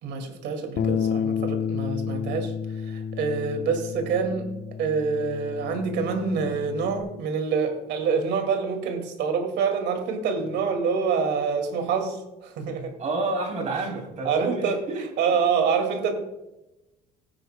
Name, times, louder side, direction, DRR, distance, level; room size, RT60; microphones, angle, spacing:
voice 1, 0.0-2.5 2.8-4.5 4.8-12.9 14.2-16.1, right 5 dB, 65° right, 5 dB, 2.2 m, -26 dB
Bass guitar, 0.8-7.0, left 7 dB, 50° left, 1.0 m, -31 dB
voice 2, 13.0-15.0, right 2 dB, 40° right, 0 dB, 3.5 m, -30 dB
17.0 x 10.0 x 2.2 m, 0.97 s
cardioid pair, 130°, 19 cm